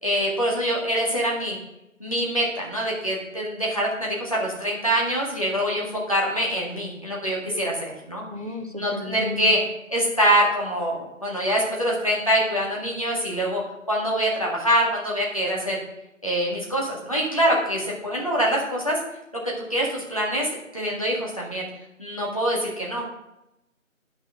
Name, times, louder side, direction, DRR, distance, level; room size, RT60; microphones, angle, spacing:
voice 1, 0.0-1.6 2.0-8.2 8.8-9.6 9.9-13.6 13.9-15.8 16.2-19.0 19.4-21.7 22.0-23.0, equal, 25° left, -4 dB, 1.9 m, -24 dB
voice 2, 8.3-9.5, left 2 dB, 40° right, 5 dB, 0.9 m, -33 dB
9.6 x 6.3 x 6.3 m, 0.89 s
figure-of-eight pair, 175°, 41 cm